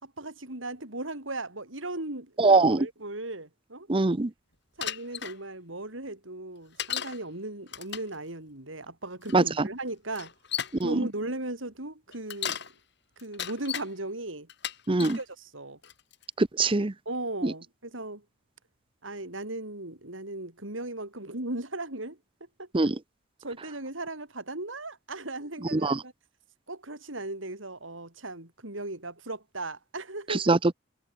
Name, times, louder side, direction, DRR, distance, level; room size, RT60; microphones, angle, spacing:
voice 1, 0.0-3.9 4.8-10.3 10.8-12.6 13.2-14.5 15.0-15.8 17.1-18.2 19.0-22.2 22.6-22.7 23.4-26.1 26.7-30.5, right 2 dB, 85° right, 6.0 m, -37 dB
voice 2, 2.4-2.9 3.9-4.3 9.3-9.7 10.8-11.0 14.9-15.2 16.4-16.9 17.4-17.5 22.7-23.0 25.7-26.0 30.3-30.7, right 3 dB, 25° right, 0.7 m, -23 dB
Bicycle, 4.8-5.4 6.8-7.2 7.7-8.1 9.2-9.3 10.1-10.8 12.1-12.7 13.2-13.9 14.5-15.2 15.8-16.2, left 9 dB, 60° left, 6.6 m, -34 dB
head